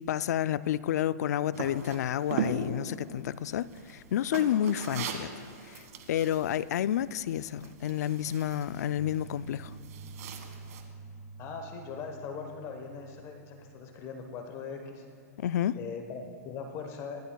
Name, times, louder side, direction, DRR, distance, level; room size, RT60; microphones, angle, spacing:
voice 1, 0.0-5.3 5.6-9.7 15.4-15.8, left 11 dB, 70° left, 0.4 m, -30 dB
sound 1, 1.5-10.8, right 5 dB, 65° right, 1.6 m, -40 dB
sound 2, 9.0-14.0, right 4 dB, 15° right, 0.5 m, -48 dB
voice 2, 11.4-15.0 15.7-17.2, left 5 dB, 30° left, 1.1 m, -40 dB
26.0 x 11.5 x 2.3 m
hypercardioid pair, 145°, 9 cm